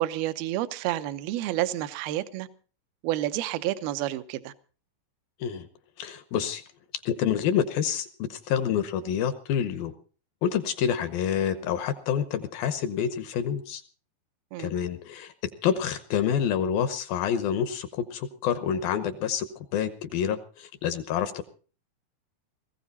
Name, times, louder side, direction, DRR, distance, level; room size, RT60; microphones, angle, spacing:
voice 1, 0.0-2.5 3.0-4.5 14.5-14.7, right 14 dB, 75° right, 2.4 m, -29 dB
voice 2, 6.0-6.6 6.9-9.9 10.4-13.8 14.6-21.4, left 8 dB, 75° left, 2.2 m, -28 dB
20.0 x 15.5 x 4.1 m
omnidirectional pair, 5.1 m